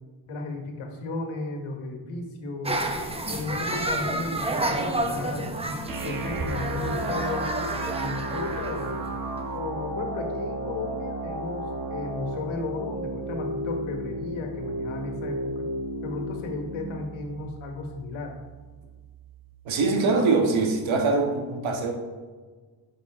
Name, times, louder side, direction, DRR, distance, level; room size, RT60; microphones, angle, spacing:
voice 1, 0.3-2.8 3.3-5.8 6.0-7.5 7.9-9.0 9.5-15.7 16.0-18.4, left 3 dB, 80° left, 2 dB, 1.6 m, -34 dB
sound 1, 2.7-9.5, right 1 dB, 10° right, 0.8 m, -30 dB
sound 2, 5.9-19.8, right 1 dB, 45° right, 1.3 m, -34 dB
voice 2, 19.6-21.9, right 3 dB, 70° right, 3 dB, 1.5 m, -23 dB
9.4 x 5.8 x 3.7 m, 1.4 s
cardioid pair, 100°, 48 cm